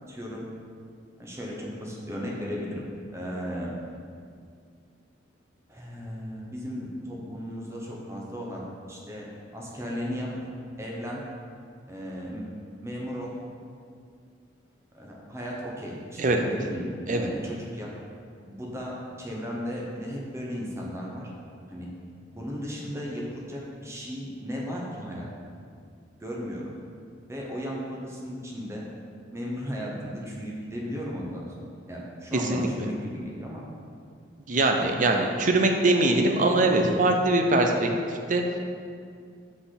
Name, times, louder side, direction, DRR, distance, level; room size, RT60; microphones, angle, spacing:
voice 1, 0.1-0.5 1.2-2.9 3.1-3.8 5.7-10.3 10.8-11.2 11.9-12.5 12.8-13.3 14.9-17.9 18.5-21.3 21.7-21.9 22.3-25.3 26.2-26.8 27.3-28.8 29.3-33.6, equal, 15° right, -3 dB, 1.0 m, -35 dB
voice 2, 32.3-32.7 34.5-38.4, right 2 dB, 40° right, 3 dB, 0.6 m, -22 dB
5.7 x 4.2 x 5.8 m, 2.2 s
head